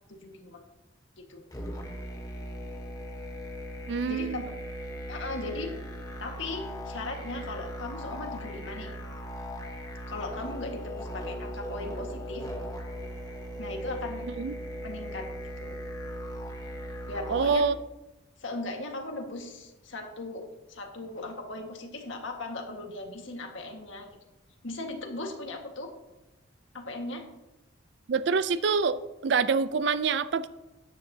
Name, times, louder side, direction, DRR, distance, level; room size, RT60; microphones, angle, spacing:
voice 1, 0.1-0.6 1.2-1.4 4.1-4.5 5.1-5.8 6.2-9.0 10.1-12.5 13.6-14.3 14.8-15.8 17.1-17.7 18.4-24.2 24.6-25.9 26.7-27.3, left 2 dB, 75° left, 3 dB, 1.6 m, -38 dB
sound 1, 1.5-17.6, equal, 20° left, 1.0 m, -38 dB
voice 2, 3.9-4.4 14.4-14.5 17.3-17.8 28.1-30.5, right 5 dB, 60° right, 14 dB, 0.4 m, -26 dB
13.5 x 9.4 x 2.7 m, 1.0 s
head